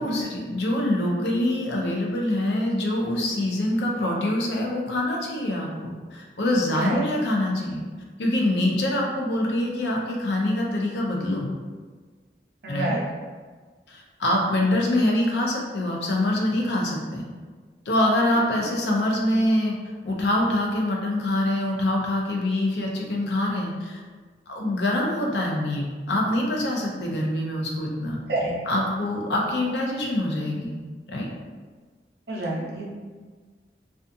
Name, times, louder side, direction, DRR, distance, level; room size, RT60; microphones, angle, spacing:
voice 1, 0.0-7.8 8.2-11.5 12.7-13.0 13.9-17.2 17.9-19.8 20.0-24.0 24.5-28.2 28.7-30.7 31.1-31.3, left 1 dB, 80° left, -1 dB, 0.5 m, -25 dB
voice 2, 6.7-7.0 12.6-13.0 28.3-28.5 32.3-32.8, right 2 dB, 70° right, -3 dB, 0.6 m, -28 dB
2.4 x 2.4 x 2.6 m, 1.4 s
head